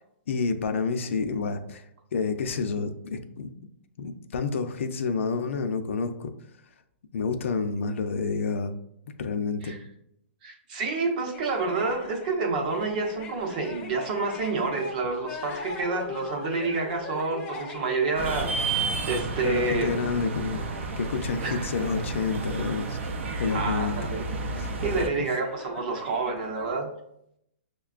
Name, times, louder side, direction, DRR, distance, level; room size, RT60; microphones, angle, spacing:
voice 1, 0.3-1.8 2.1-3.5 4.0-6.3 7.1-8.8 9.1-9.8 19.4-20.6 21.0-23.1 23.4-24.1 24.6-24.8, left 4 dB, 75° left, 7 dB, 0.5 m, -29 dB
voice 2, 10.4-19.9 21.4-21.7 23.5-24.2 24.8-26.9, right 3 dB, 40° right, 3 dB, 0.7 m, -29 dB
sound 1, 11.3-26.7, left 4 dB, 20° left, 0.5 m, -43 dB
sound 2, 18.1-25.1, right 3 dB, 75° right, 0.5 m, -31 dB
6.5 x 2.2 x 2.4 m, 0.76 s
hypercardioid pair, 165°, 7 cm